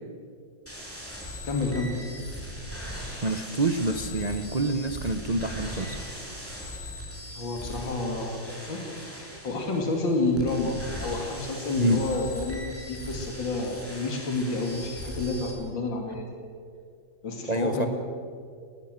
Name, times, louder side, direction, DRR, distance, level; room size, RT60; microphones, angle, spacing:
sound 1, 0.7-15.5, equal, 5° left, 4.4 m, -39 dB
voice 1, 1.4-2.0 7.3-8.8 9.4-12.6 12.9-16.3 17.2-17.9, left 2 dB, 75° left, 2 dB, 2.9 m, -29 dB
voice 2, 3.2-6.0 11.8-12.1 17.5-17.9, right 2 dB, 45° right, 7 dB, 0.5 m, -27 dB
20.0 x 17.0 x 7.6 m, 2.3 s
omnidirectional pair, 2.1 m